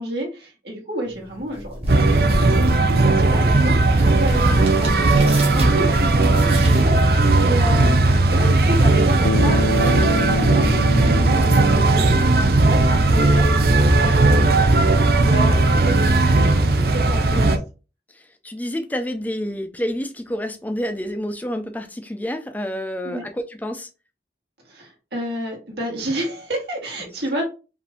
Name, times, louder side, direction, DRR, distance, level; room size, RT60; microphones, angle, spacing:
voice 1, 0.0-8.0 8.3-17.6 23.0-23.2 24.6-27.4, equal, 75° right, 2.0 m, -30 dB
sound 1, 1.1-12.1, right 1 dB, 35° right, 1.4 m, -34 dB
sound 2, 1.9-17.6, right 2 dB, 55° right, 0.5 m, -17 dB
Bass guitar, 9.2-13.6, left 5 dB, 85° left, 0.3 m, -29 dB
voice 2, 18.1-23.9, equal, 10° left, 0.4 m, -29 dB
5.0 x 2.6 x 3.4 m
head